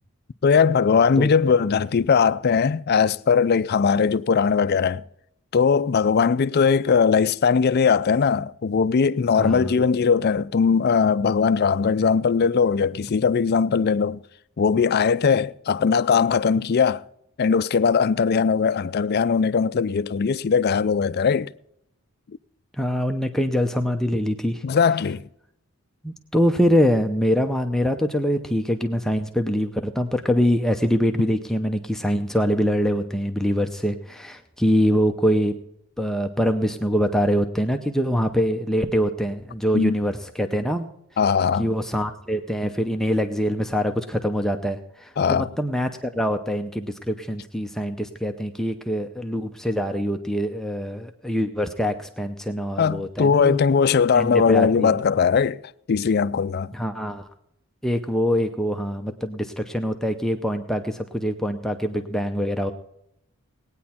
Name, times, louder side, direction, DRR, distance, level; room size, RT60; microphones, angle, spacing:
voice 1, 0.4-5.0 5.5-14.2 14.6-17.0 17.4-21.5 24.6-25.2 39.7-39.9 41.2-41.7 45.2-45.5 52.8-55.6 55.9-56.7, left 6 dB, 45° left, 0.4 m, -20 dB
voice 2, 9.4-9.8 22.8-24.6 26.0-35.5 36.0-40.9 41.6-53.6 54.1-55.0 56.7-57.3 57.8-62.7, equal, ahead, 0.6 m, -24 dB
18.5 x 9.4 x 4.3 m
head